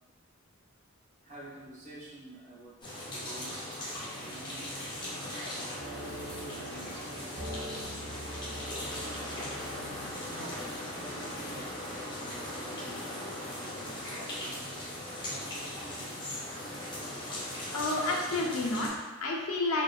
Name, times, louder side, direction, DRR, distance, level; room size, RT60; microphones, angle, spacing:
voice 1, 1.2-2.7 3.1-4.8 5.5-8.5 9.6-11.7 12.1-14.7 15.2-16.2, right 2 dB, 35° right, -7 dB, 0.6 m, -50 dB
sound 1, 2.8-18.9, left 1 dB, 20° left, 0.5 m, -39 dB
sound 2, 5.8-16.2 16.6-16.7 17.2-17.5, equal, 75° right, 0.6 m, -47 dB
voice 2, 17.7-19.8, left 2 dB, 90° left, -1 dB, 0.5 m, -30 dB
2.8 x 2.1 x 2.3 m, 1.2 s
head